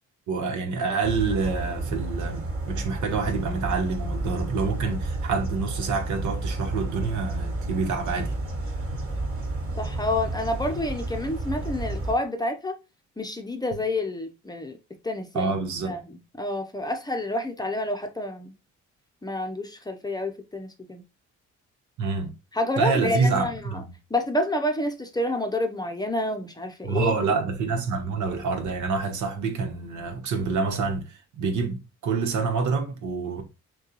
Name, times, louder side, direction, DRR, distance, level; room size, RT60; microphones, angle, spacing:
voice 1, 0.3-2.4 2.7-8.3 15.3-16.0 22.0-22.3 22.8-23.9 26.8-33.4, right 4 dB, 75° right, 1.0 m, -27 dB
sound 1, 1.0-12.1, right 2 dB, 45° right, 1.9 m, -31 dB
voice 2, 9.8-12.7 13.2-14.8 15.0-15.5 15.8-18.5 19.2-21.0 22.5-23.8 24.1-27.4, left 1 dB, 15° left, 0.6 m, -29 dB
6.4 x 2.3 x 2.9 m
cardioid pair, 90°, 30 cm